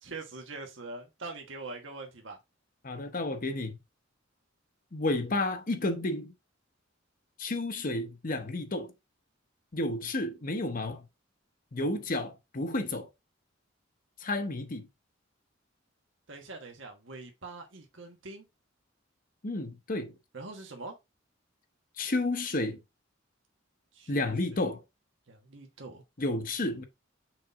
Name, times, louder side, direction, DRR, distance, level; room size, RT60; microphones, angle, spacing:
voice 1, 0.0-2.4 16.3-18.5 20.3-21.0 23.9-24.6 25.3-26.0, right 3 dB, 65° right, 1.4 m, -43 dB
voice 2, 2.8-3.8 4.9-6.3 7.4-8.9 9.7-11.1 11.7-13.1 14.2-14.9 19.4-20.2 22.0-22.8 24.1-24.8 26.2-26.8, left 2 dB, 45° left, 0.9 m, -31 dB
6.3 x 4.1 x 3.6 m
head